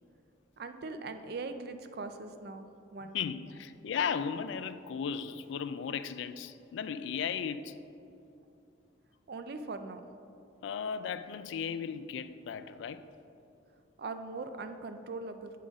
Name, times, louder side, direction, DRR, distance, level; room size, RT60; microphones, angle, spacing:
voice 1, 0.6-2.7 2.9-3.2 9.3-10.0 14.0-15.5, right 3 dB, 50° right, 0.4 m, -40 dB
voice 2, 3.1-7.8 10.6-13.0, left 7 dB, 70° left, 0.3 m, -36 dB
8.3 x 3.8 x 5.1 m
head